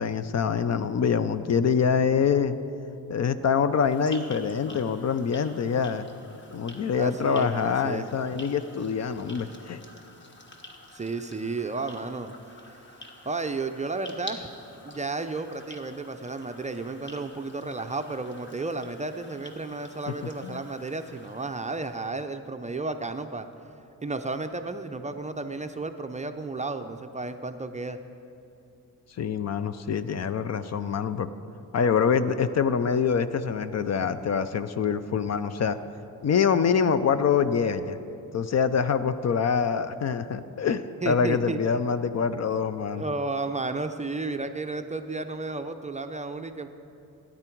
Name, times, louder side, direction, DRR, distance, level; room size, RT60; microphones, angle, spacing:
voice 1, 0.0-2.5 3.1-6.1 6.5-9.8 20.1-20.2 20.4-20.6 29.2-31.3 31.7-35.8 36.2-38.0 38.3-43.0, left 6 dB, 45° left, 12 dB, 0.5 m, -25 dB
sound 1, 3.7-22.2, left 1 dB, 30° left, 1.4 m, -48 dB
voice 2, 7.0-8.1 10.9-12.3 13.3-14.5 14.8-23.5 24.0-28.0 41.0-41.6 43.0-46.7, right 3 dB, 20° right, 7 dB, 0.5 m, -32 dB
17.0 x 10.0 x 4.5 m, 2.7 s
cardioid pair, 115°, 37 cm